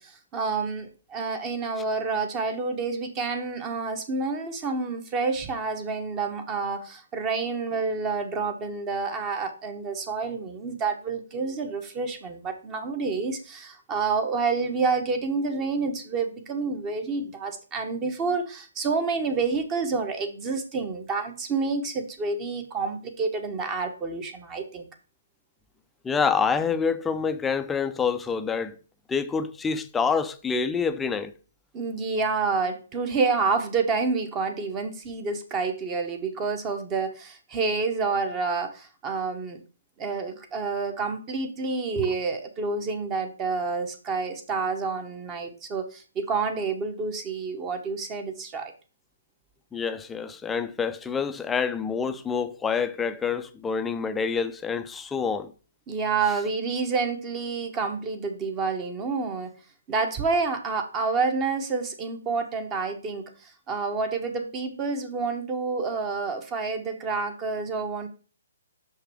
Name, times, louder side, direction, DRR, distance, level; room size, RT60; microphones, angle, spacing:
voice 1, 0.0-24.8 31.7-39.6 40.0-48.7 55.9-59.5 59.9-68.1, right 4 dB, 20° right, 0.9 m, -28 dB
voice 2, 26.0-28.8 29.1-31.3 49.7-55.5, left 5 dB, 10° left, 0.4 m, -27 dB
5.9 x 5.6 x 3.5 m
hypercardioid pair, 150°, 0 cm